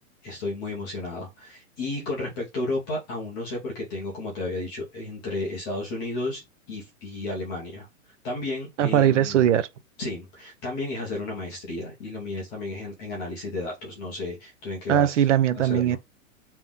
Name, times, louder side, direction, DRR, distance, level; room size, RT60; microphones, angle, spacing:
voice 1, 0.2-6.4 6.7-7.9 8.2-9.4 10.0-15.1 15.6-16.0, left 2 dB, 10° left, 0.4 m, -33 dB
voice 2, 8.8-9.7 14.9-16.0, right 10 dB, 60° right, 0.6 m, -20 dB
3.5 x 3.0 x 3.6 m
hypercardioid pair, 165°, 40 cm